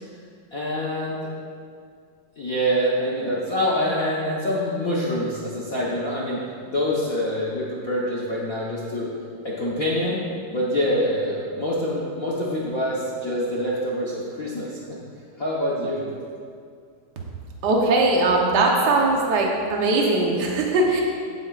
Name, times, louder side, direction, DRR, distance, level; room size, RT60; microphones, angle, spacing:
voice 1, 0.5-1.2 2.4-9.1 9.4-10.2 10.5-14.8 15.4-16.1, equal, 65° left, -5 dB, 0.8 m, -25 dB
voice 2, 17.6-21.0, right 2 dB, 85° right, -1 dB, 0.9 m, -20 dB
15.5 x 9.0 x 2.5 m, 2.3 s
omnidirectional pair, 3.4 m